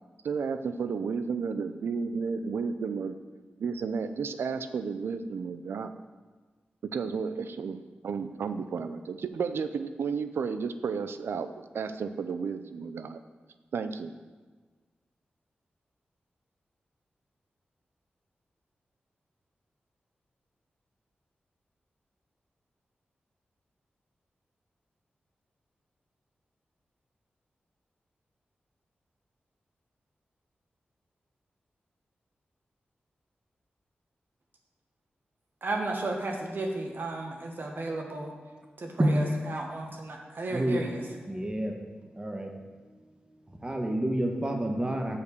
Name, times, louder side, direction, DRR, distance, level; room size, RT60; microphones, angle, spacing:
voice 1, 0.2-3.2 3.6-5.9 6.9-13.2 13.7-14.1, right 5 dB, 85° right, 10 dB, 0.4 m, -32 dB
voice 2, 35.6-38.3 38.8-41.0, right 2 dB, 60° right, 1 dB, 1.5 m, -34 dB
voice 3, 41.3-41.7 42.1-42.5 43.6-45.2, right 1 dB, 20° right, 2 dB, 1.2 m, -28 dB
6.8 x 5.0 x 6.8 m, 1.4 s
cardioid pair, 45°, 4 cm